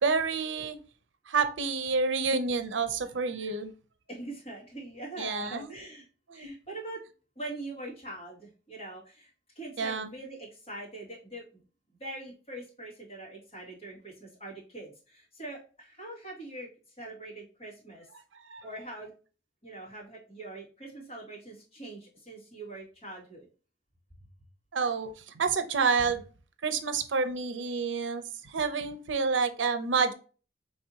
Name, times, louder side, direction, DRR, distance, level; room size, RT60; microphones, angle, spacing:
voice 1, 0.0-0.8 1.3-3.7 5.2-5.7 6.3-6.5 9.8-10.1 18.3-18.6 24.7-26.2 26.6-30.1, right 5 dB, 90° right, 10 dB, 0.6 m, -29 dB
voice 2, 4.1-6.0 6.3-7.0 7.4-11.6 11.9-18.1 18.6-19.1 19.6-23.5 24.2-24.3, right 1 dB, 35° left, -6 dB, 2.2 m, -43 dB
4.7 x 3.3 x 2.8 m, 0.37 s
head